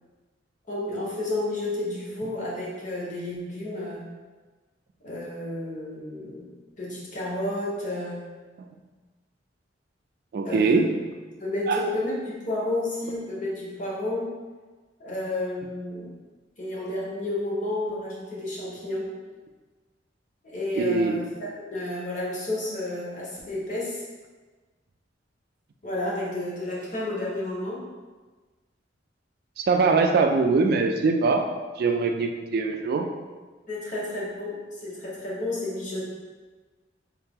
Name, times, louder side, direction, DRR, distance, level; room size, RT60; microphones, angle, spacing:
voice 1, 0.7-4.1 5.0-6.5 6.8-8.2 10.4-11.1 11.4-14.3 15.0-16.1 16.6-19.1 20.4-24.0 25.8-27.8 33.7-36.1, left 1 dB, 45° left, -5 dB, 1.1 m, -31 dB
voice 2, 10.3-10.9 11.7-11.8 20.8-21.2 29.6-31.5 31.8-33.1, right 4 dB, 55° right, 4 dB, 0.3 m, -22 dB
3.6 x 2.9 x 3.6 m, 1.3 s
head